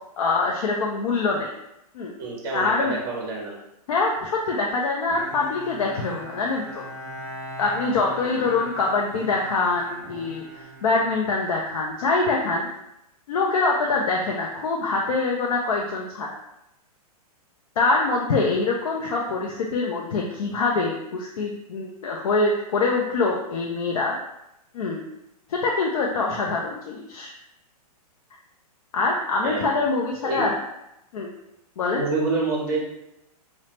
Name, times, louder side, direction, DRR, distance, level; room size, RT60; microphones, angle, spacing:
voice 1, 0.2-1.5 1.9-2.1 2.5-3.0 3.9-6.8 7.6-12.7 13.3-16.3 17.8-24.1 24.7-25.0 25.5-27.3 28.9-30.5 31.1-31.3 31.8-32.0, left 3 dB, 65° left, -2 dB, 0.4 m, -24 dB
voice 2, 2.2-3.6 8.2-8.5 29.4-29.7 30.2-30.5 31.9-32.8, right 3 dB, 35° right, -2 dB, 0.7 m, -28 dB
Bowed string instrument, 5.1-11.8, equal, 5° left, 1.0 m, -40 dB
3.1 x 2.0 x 2.8 m, 0.84 s
hypercardioid pair, 175°, 20 cm